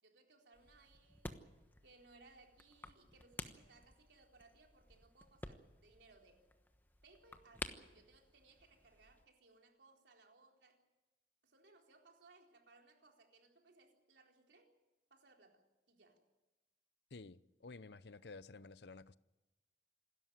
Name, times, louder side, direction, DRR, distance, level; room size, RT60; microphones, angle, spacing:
voice 1, 0.0-6.4 7.0-10.8 11.4-14.7 15.1-16.2, right 3 dB, 90° right, 4.1 m, -66 dB
sound 1, 0.5-9.3, left 1 dB, 10° left, 1.1 m, -53 dB
voice 2, 17.1-19.2, left 3 dB, 75° left, 0.7 m, -53 dB
27.0 x 13.5 x 9.5 m
head